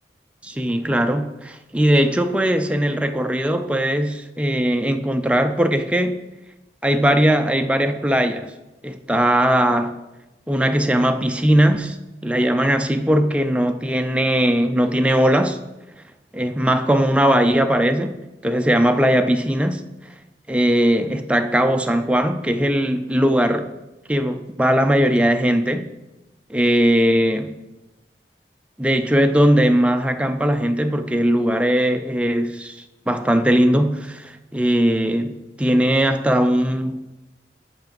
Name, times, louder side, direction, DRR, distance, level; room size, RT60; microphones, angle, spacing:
voice 1, 0.4-6.2 6.8-8.5 8.8-10.0 10.5-12.0 12.2-15.6 16.3-18.2 18.4-19.8 20.5-23.7 24.1-25.9 26.5-27.6 28.8-32.8 33.1-37.0, equal, 5° right, 0.3 m, -19 dB
6.7 x 5.8 x 5.2 m
head